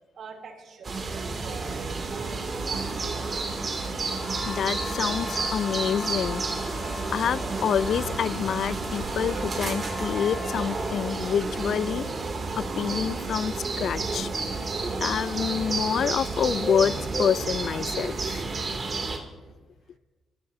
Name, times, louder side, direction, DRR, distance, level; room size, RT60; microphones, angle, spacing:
voice 1, 0.1-2.9, right 4 dB, 65° right, 1 dB, 2.9 m, -43 dB
sound 1, 0.8-19.2, right 3 dB, 45° right, 2.6 m, -31 dB
sound 2, 4.1-11.3, left 4 dB, 40° left, 2.4 m, -40 dB
voice 2, 4.5-6.4 7.1-12.1 12.6-14.3 15.0-18.4, left 8 dB, 65° left, 20 dB, 0.3 m, -27 dB
sound 3, 7.8-13.9, left 3 dB, 90° left, 2.1 m, -48 dB
24.5 x 15.0 x 2.7 m, 1.3 s
supercardioid pair, 65°, 0 cm